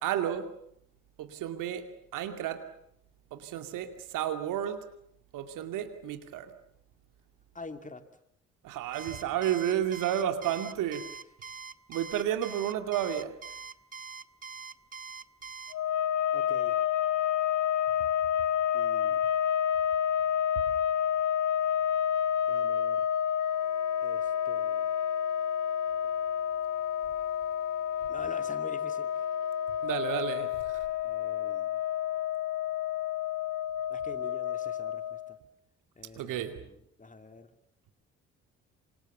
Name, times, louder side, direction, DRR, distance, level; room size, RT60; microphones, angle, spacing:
voice 1, 0.0-0.5 1.2-1.9 2.1-2.7 3.3-4.9 5.3-6.5 8.6-11.1 11.9-13.4 29.8-30.9 36.2-36.6, right 10 dB, 65° right, 2.5 m, -32 dB
voice 2, 7.5-8.1 16.3-16.8 18.7-19.2 22.5-23.1 24.0-24.9 28.1-29.3 31.0-31.8 33.9-35.4 36.0-37.6, left 3 dB, 20° left, 2.8 m, -47 dB
Alarm, 8.9-15.7, right 5 dB, 25° right, 1.2 m, -43 dB
sound 1, 15.7-35.4, left 9 dB, 60° left, 1.6 m, -29 dB
27.5 x 26.0 x 7.1 m
hypercardioid pair, 45°, 34 cm